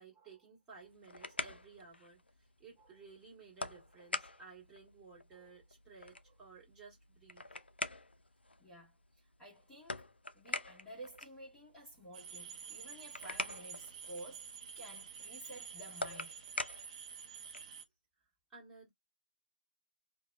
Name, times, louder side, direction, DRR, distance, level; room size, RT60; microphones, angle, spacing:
voice 1, 0.0-7.6 18.5-18.9, right 4 dB, 10° right, 1.3 m, -56 dB
sound 1, 0.7-17.8, left 2 dB, 80° left, 0.4 m, -46 dB
voice 2, 8.6-10.1 10.3-16.3, right 1 dB, 10° left, 1.1 m, -52 dB
sound 2, 12.1-17.8, right 7 dB, 40° right, 0.6 m, -49 dB
2.6 x 2.1 x 2.3 m
figure-of-eight pair, 130°, 6 cm